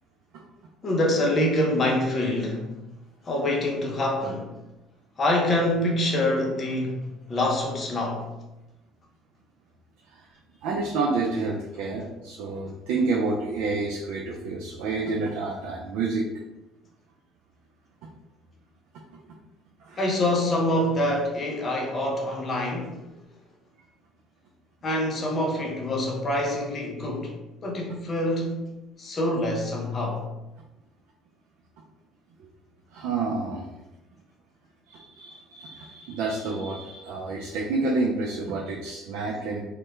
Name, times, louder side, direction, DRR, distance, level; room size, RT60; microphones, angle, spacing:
voice 1, 0.8-2.7 3.2-4.5 5.2-7.0 7.3-8.2 20.0-23.0 24.8-27.3 27.6-28.6 29.0-30.2, left 1 dB, 40° left, 0.7 m, -25 dB
voice 2, 10.6-16.3 19.8-20.0 32.9-33.7 34.9-39.6, right 3 dB, 80° right, 0.3 m, -29 dB
2.2 x 2.1 x 3.0 m
supercardioid pair, 80°, 0 cm